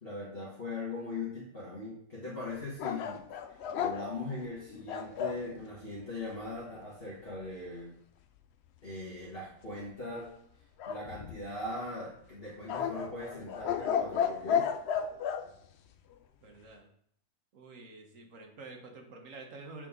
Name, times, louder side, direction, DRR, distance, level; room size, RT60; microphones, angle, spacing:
voice 1, 0.0-3.2 3.8-7.9 8.8-10.3 10.9-14.7, left 2 dB, 40° left, -7 dB, 1.7 m, -40 dB
sound 1, 2.8-5.4 10.8-11.7 12.7-15.4, left 8 dB, 70° left, 0.6 m, -33 dB
voice 2, 16.4-16.9 17.5-19.9, right 3 dB, 60° right, 1 dB, 1.4 m, -48 dB
7.5 x 4.1 x 3.7 m, 0.66 s
omnidirectional pair, 1.6 m